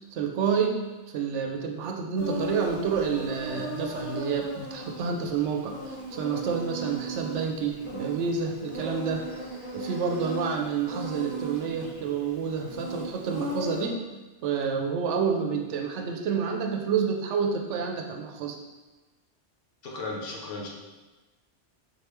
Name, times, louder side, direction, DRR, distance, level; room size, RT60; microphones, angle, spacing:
voice 1, 0.0-9.3 9.7-14.0 14.4-18.6, right 6 dB, 80° right, 3 dB, 0.9 m, -29 dB
Insect, 2.2-13.9, right 1 dB, 80° left, 1.8 m, -37 dB
voice 2, 19.8-20.7, left 2 dB, 60° left, -2 dB, 0.9 m, -35 dB
4.1 x 3.3 x 3.0 m, 1.2 s
omnidirectional pair, 1.2 m